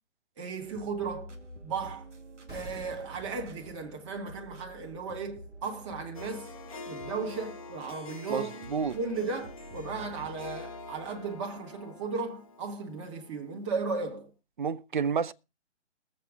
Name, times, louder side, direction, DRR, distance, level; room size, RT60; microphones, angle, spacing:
voice 1, 0.4-1.3 1.6-2.1 2.5-6.5 6.9-14.3, right 4 dB, 25° right, 1.8 m, -36 dB
sound 1, 0.6-12.3, right 1 dB, 75° right, 1.7 m, -49 dB
sound 2, 2.5-7.5 7.8-7.9, equal, 10° right, 1.4 m, -51 dB
Harp, 6.1-13.7, left 4 dB, 30° left, 0.6 m, -46 dB
voice 2, 8.3-9.0 14.6-15.3, right 6 dB, 45° right, 0.6 m, -30 dB
20.5 x 7.8 x 3.7 m
figure-of-eight pair, 140°, 36 cm